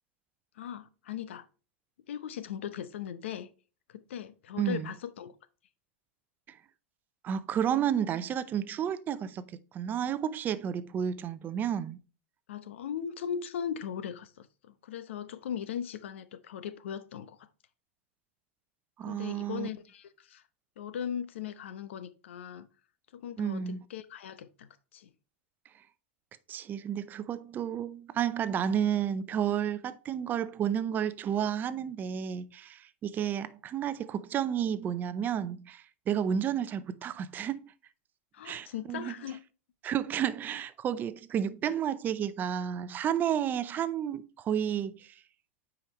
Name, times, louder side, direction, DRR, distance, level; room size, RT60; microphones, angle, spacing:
voice 1, 0.6-1.5 2.1-3.5 3.9-5.3 12.5-17.4 19.0-20.4 20.8-22.7 23.1-25.1 38.3-39.4, left 8 dB, 80° left, 0.8 m, -39 dB
voice 2, 4.6-4.9 7.2-12.0 19.0-19.7 23.4-23.8 26.5-37.6 38.4-39.1 39.8-45.1, right 9 dB, 30° right, 0.5 m, -31 dB
8.8 x 5.1 x 3.0 m
hypercardioid pair, 120°, 6 cm